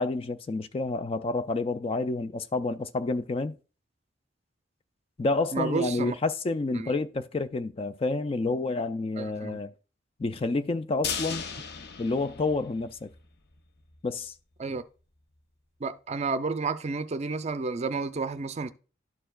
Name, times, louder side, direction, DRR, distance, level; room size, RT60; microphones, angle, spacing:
voice 1, 0.0-3.5 5.2-9.7 10.2-11.5 12.0-13.1 14.0-14.3, left 3 dB, 30° left, 0.3 m, -29 dB
voice 2, 5.5-6.1 6.7-6.9 9.2-9.6 14.6-14.8 15.8-18.7, right 4 dB, 35° right, 0.5 m, -31 dB
sound 1, 11.0-13.2 13.5-13.6 14.0-14.1, left 6 dB, 55° left, 0.7 m, -36 dB
12.0 x 4.5 x 2.3 m
head